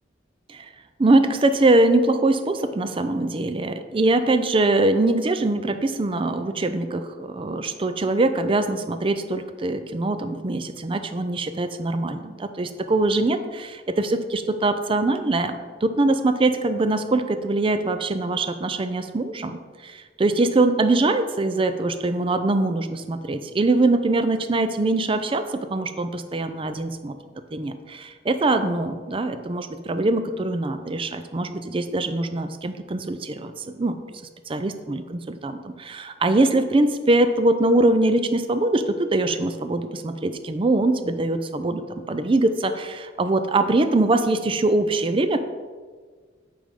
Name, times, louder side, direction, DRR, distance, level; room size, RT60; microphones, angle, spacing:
voice 1, 1.0-27.1 27.5-34.0 34.5-45.4, right 2 dB, 30° right, 9 dB, 0.4 m, -23 dB
8.8 x 3.5 x 5.1 m, 1.5 s
head